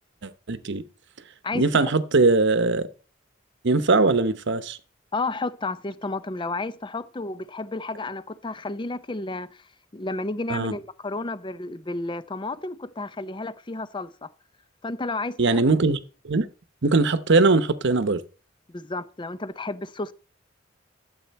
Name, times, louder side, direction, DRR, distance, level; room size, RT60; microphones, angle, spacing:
voice 1, 0.2-0.8 1.5-2.9 3.6-4.8 10.5-10.7 15.4-16.0 16.2-16.5 16.8-18.2, right 3 dB, 60° right, 0.9 m, -21 dB
voice 2, 1.4-1.9 5.1-9.7 9.9-14.3 14.8-15.6 18.7-20.1, left 2 dB, 25° left, 0.6 m, -32 dB
12.5 x 7.8 x 4.2 m
head